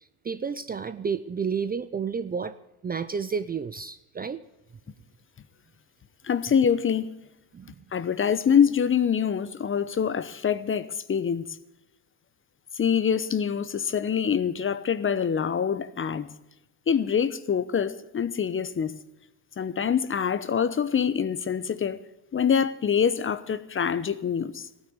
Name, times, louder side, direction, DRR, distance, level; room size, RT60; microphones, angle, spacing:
voice 1, 0.2-2.6 2.8-4.4 7.5-7.7, right 6 dB, 20° right, 0.6 m, -31 dB
voice 2, 6.2-7.1 7.9-11.6 12.8-16.3 16.9-19.0 19.6-22.0 22.3-24.7, left 7 dB, 25° left, 1.0 m, -25 dB
15.5 x 9.6 x 8.0 m
hypercardioid pair, 80°, 46 cm